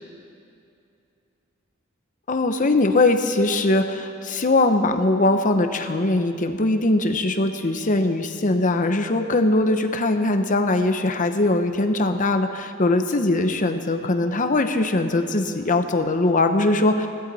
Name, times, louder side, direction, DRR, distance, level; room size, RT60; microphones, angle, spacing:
voice 1, 2.3-17.1, left 2 dB, 40° left, 8 dB, 0.8 m, -21 dB
21.0 x 16.0 x 4.1 m, 2.6 s
head